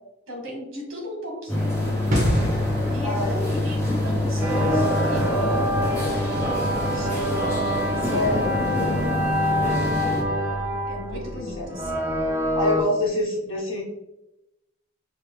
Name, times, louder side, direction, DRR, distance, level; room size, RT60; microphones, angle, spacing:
voice 1, 0.3-2.0 2.9-6.5 6.9-10.1 10.9-12.0, equal, 65° right, 0 dB, 1.2 m, -36 dB
sound 1, 1.5-10.2, left 1 dB, 15° left, 0.9 m, -25 dB
sound 2, 2.1-8.6 8.9-9.0, equal, 40° right, 1.3 m, -31 dB
voice 2, 3.0-3.4 8.1-8.6 11.1-11.7 12.5-13.8, left 1 dB, 80° left, -9 dB, 1.3 m, -26 dB
sound 3, 4.4-12.8, equal, 10° right, 0.6 m, -26 dB
5.0 x 2.3 x 3.2 m, 0.94 s
head